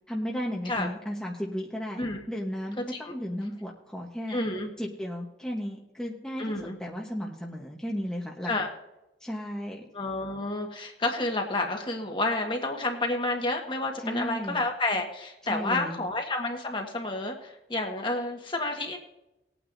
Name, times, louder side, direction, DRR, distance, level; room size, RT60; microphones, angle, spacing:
voice 1, 0.1-4.4 4.8-8.5 9.2-9.8 14.0-14.6 15.5-16.0, equal, 5° left, -3 dB, 1.1 m, -34 dB
voice 2, 4.3-4.7 6.4-6.8 8.4-8.7 9.9-19.0, left 2 dB, 30° left, 2 dB, 1.6 m, -30 dB
20.0 x 9.0 x 2.7 m, 0.96 s
head